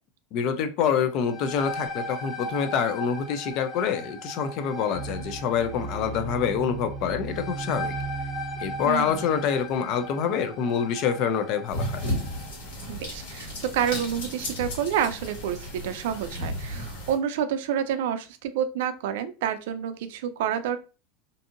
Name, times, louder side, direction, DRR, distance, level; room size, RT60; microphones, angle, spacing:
voice 1, 0.3-7.9 8.6-12.0, left 7 dB, 45° left, 9 dB, 0.4 m, -26 dB
sound 1, 1.1-12.6, left 1 dB, 15° left, 0.8 m, -38 dB
sound 2, 4.9-10.2, right 4 dB, 20° right, 0.5 m, -37 dB
voice 2, 8.9-9.2 12.9-20.8, right 9 dB, 75° right, 10 dB, 0.4 m, -28 dB
sound 3, 11.7-17.2, equal, 85° left, 1.5 m, -34 dB
2.6 x 2.6 x 2.5 m, 0.33 s
supercardioid pair, 155°, 0 cm